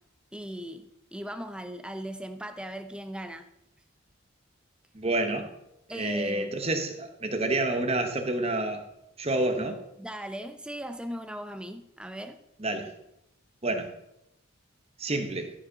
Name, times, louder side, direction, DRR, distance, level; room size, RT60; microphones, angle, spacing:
voice 1, 0.3-3.5 5.9-6.6 10.0-12.4, equal, 5° right, 0.5 m, -38 dB
voice 2, 4.9-5.5 5.9-8.8 9.2-9.8 12.6-12.9 13.6-13.9 15.0-15.5, right 2 dB, 30° right, 1.1 m, -28 dB
13.5 x 7.1 x 4.0 m
head